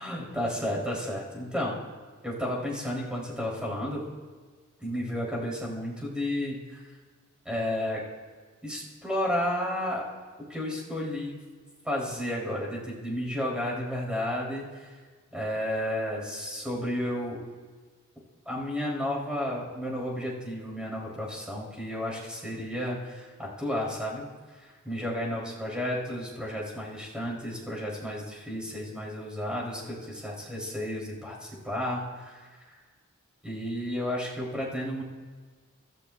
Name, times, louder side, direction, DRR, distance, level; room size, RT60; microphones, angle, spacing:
voice 1, 0.0-1.7 2.2-4.1 4.8-6.8 7.4-8.0 8.6-10.0 10.5-11.4 11.8-14.9 15.3-17.4 18.4-24.2 24.8-32.4 33.4-35.0, left 1 dB, 5° right, -3 dB, 3.0 m, -32 dB
24.5 x 13.5 x 2.3 m, 1.5 s
head